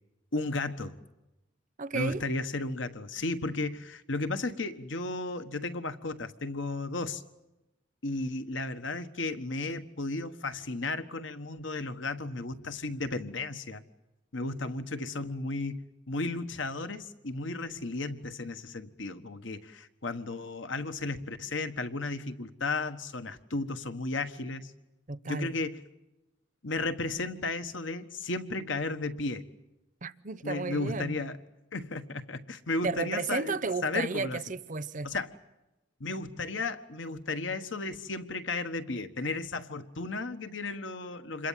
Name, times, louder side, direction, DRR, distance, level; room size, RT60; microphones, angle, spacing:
voice 1, 0.3-1.0 1.9-7.2 8.0-13.8 14.3-24.7 25.2-25.8 26.6-29.4 30.4-31.4 31.7-34.4 35.0-35.3 36.0-41.5, left 3 dB, 70° left, 1.5 m, -34 dB
voice 2, 1.8-2.2 25.1-25.6 30.0-31.2 32.8-35.1, right 4 dB, 40° right, 0.8 m, -33 dB
27.5 x 22.0 x 7.5 m
head